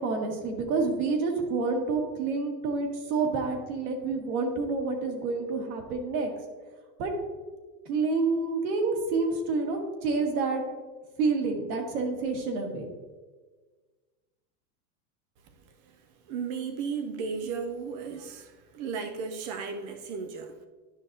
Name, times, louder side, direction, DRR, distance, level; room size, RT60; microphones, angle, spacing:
voice 1, 0.0-6.3 7.0-7.1 7.9-10.6 11.2-12.9, right 4 dB, 60° right, 1.8 m, -28 dB
voice 2, 16.3-20.6, right 5 dB, 30° right, 0.3 m, -35 dB
11.0 x 5.9 x 2.7 m
supercardioid pair, 150°, 49 cm